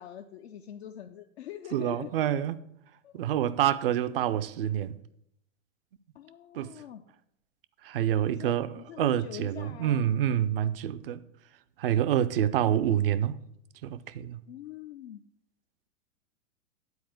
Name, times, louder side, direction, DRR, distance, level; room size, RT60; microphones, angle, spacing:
voice 1, 0.0-2.1 3.0-3.2 6.1-7.0 8.3-10.1 14.5-15.2, left 11 dB, 55° left, 0.6 m, -44 dB
voice 2, 1.7-2.6 3.1-5.0 6.5-6.7 7.8-11.2 11.8-13.4 13.8-14.4, right 10 dB, 50° right, 0.5 m, -27 dB
9.6 x 4.2 x 7.5 m
figure-of-eight pair, 105°, 38 cm